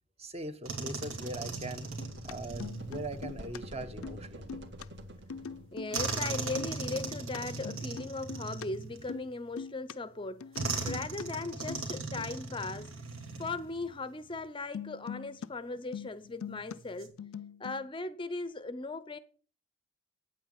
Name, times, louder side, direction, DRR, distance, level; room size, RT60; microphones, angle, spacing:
voice 1, 0.2-1.9 2.2-4.6, right 1 dB, 30° right, 1.0 m, -41 dB
sound 1, 0.7-3.3 5.9-9.4 10.6-13.9 14.2-14.4 16.7-17.1, right 3 dB, 80° right, 2.9 m, -38 dB
sound 2, 1.0-5.9, equal, 55° right, 1.6 m, -47 dB
sound 3, 1.8-2.3 2.6-3.6 3.9-4.2 4.5-4.8 5.3-6.1 6.4-7.4 7.6-8.7 8.9-9.3 9.6-9.9 10.4-11.3 11.7-11.9 12.2-12.3 14.7-15.5 15.8-16.8 17.0-17.9, left 6 dB, 80° left, 0.5 m, -42 dB
voice 2, 5.7-10.5 10.8-12.9 13.4-17.1 17.6-19.2, left 3 dB, 25° left, 0.6 m, -38 dB
8.9 x 8.9 x 8.1 m
head